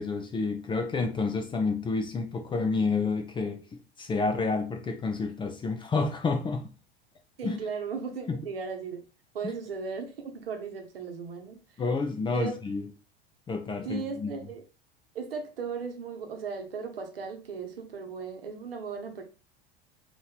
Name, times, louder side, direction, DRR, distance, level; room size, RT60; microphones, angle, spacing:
voice 1, 0.0-3.6 4.0-6.7 7.4-7.6 8.3-8.4 9.4-9.5 11.8-12.8 13.5-14.3, left 4 dB, 15° left, 0.6 m, -29 dB
voice 2, 7.4-9.1 9.3-11.6 12.3-12.5 13.8-14.6 15.1-19.2, right 5 dB, 70° right, 1.0 m, -36 dB
3.8 x 3.1 x 4.1 m
figure-of-eight pair, 80°, 31 cm